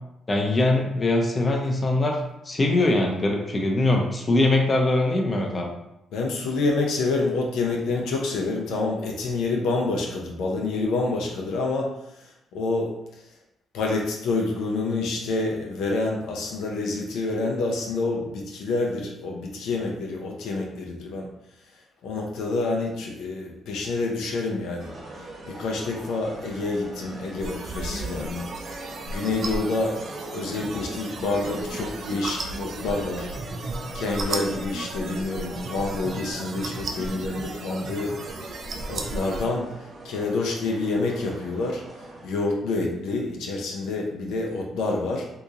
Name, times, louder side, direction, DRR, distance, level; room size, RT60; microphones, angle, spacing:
voice 1, 0.3-2.2 2.5-5.7, left 2 dB, 30° left, 1 dB, 0.7 m, -22 dB
voice 2, 6.1-11.9 12.5-12.9 13.7-21.3 22.0-24.9 25.4-28.5 29.1-29.9 30.3-33.3 33.9-38.1 38.9-39.7 40.0-41.8 42.2-45.2, left 3 dB, 85° left, -1 dB, 0.6 m, -27 dB
sound 1, 24.8-42.3, right 2 dB, 40° right, 1.1 m, -42 dB
sound 2, 27.4-39.5, right 2 dB, 55° right, 0.5 m, -35 dB
2.9 x 2.5 x 3.7 m, 0.85 s
cardioid pair, 90°, 0 cm